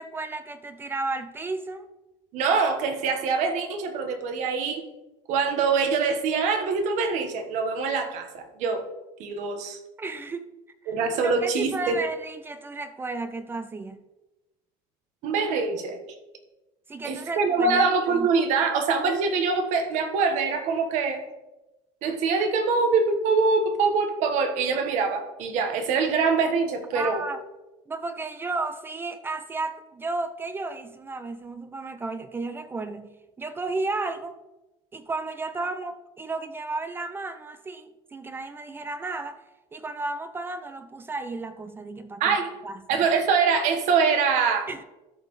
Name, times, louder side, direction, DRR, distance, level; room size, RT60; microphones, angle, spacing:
voice 1, 0.0-1.9 10.0-10.5 10.8-10.9 11.2-14.0 16.9-18.3 26.9-27.4 27.9-34.4 34.9-39.4 39.7-42.4 42.6-43.0 44.7-44.8, right 3 dB, 15° right, 10 dB, 0.4 m, -33 dB
voice 2, 2.3-4.8 5.3-8.8 9.2-9.8 10.9-11.9 15.2-16.0 17.0-21.2 22.0-27.2 42.2-42.5 42.9-44.7, right 5 dB, 60° right, 5 dB, 1.4 m, -24 dB
13.5 x 5.5 x 3.2 m, 1.0 s
cardioid pair, 150°, 14 cm